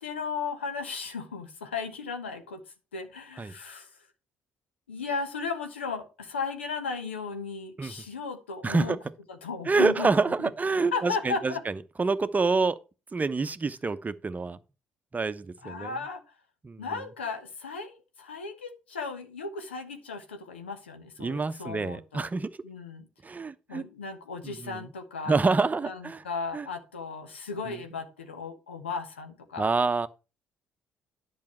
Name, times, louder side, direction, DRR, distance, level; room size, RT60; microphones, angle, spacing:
voice 1, 0.0-2.6 2.9-3.9 4.9-9.0 9.3-10.1 10.4-10.5 10.9-11.6 15.6-16.2 16.8-22.3 22.6-23.1 23.7-25.4 25.8-29.7, left 4 dB, 90° left, 1.1 m, -35 dB
voice 2, 8.6-9.0 9.7-11.7 12.0-12.8 13.1-14.6 15.1-15.9 16.6-16.8 21.2-22.5 23.2-23.8 24.4-24.8 25.3-26.2 26.5-26.7 27.7-27.8 29.6-30.1, right 4 dB, 25° right, 0.8 m, -27 dB
10.5 x 5.5 x 4.3 m
hypercardioid pair, 50°, 6 cm